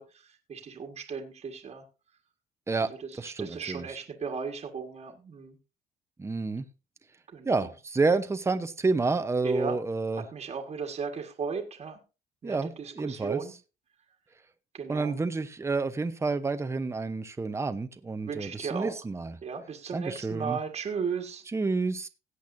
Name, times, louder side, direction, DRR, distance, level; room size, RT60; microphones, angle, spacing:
voice 1, 0.0-1.8 2.8-5.6 7.3-7.7 9.4-9.8 10.1-12.0 12.4-13.5 14.7-15.1 18.2-19.0 19.4-21.4, right 5 dB, 40° right, 3 dB, 1.7 m, -36 dB
voice 2, 3.2-3.6 6.2-6.6 7.4-10.2 12.4-13.4 14.9-19.3 19.9-20.6 21.5-22.1, right 3 dB, 15° right, 10 dB, 0.9 m, -29 dB
17.0 x 8.1 x 2.7 m, 0.30 s
cardioid pair, 110°, 17 cm